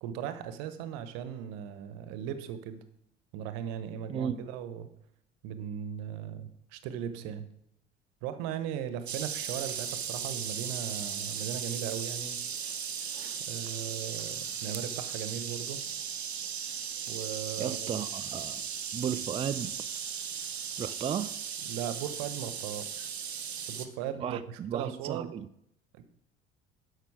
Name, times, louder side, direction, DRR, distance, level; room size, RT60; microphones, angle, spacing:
voice 1, 0.0-2.8 3.3-4.9 5.4-7.5 8.2-12.4 13.5-15.8 17.1-18.0 21.7-23.1 23.5-24.4 24.7-25.4 25.9-26.0, right 9 dB, 55° right, 1.1 m, -38 dB
voice 2, 4.1-4.5 17.6-19.7 20.8-21.4 24.2-25.5, right 8 dB, 20° right, 0.4 m, -35 dB
sound 1, 9.1-23.9, right 7 dB, 80° right, 0.7 m, -37 dB
11.5 x 6.6 x 4.9 m
figure-of-eight pair, 60°, 32 cm